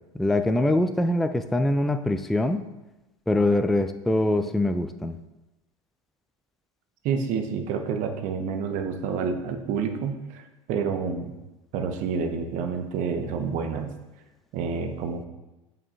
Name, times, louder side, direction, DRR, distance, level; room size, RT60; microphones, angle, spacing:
voice 1, 0.1-2.6 3.3-5.2, left 1 dB, ahead, 8 dB, 0.3 m, -23 dB
voice 2, 7.0-11.3 11.7-13.9 14.5-15.3, right 6 dB, 50° right, 6 dB, 0.9 m, -29 dB
9.4 x 5.5 x 2.6 m, 1.0 s
hypercardioid pair, 85°, 17 cm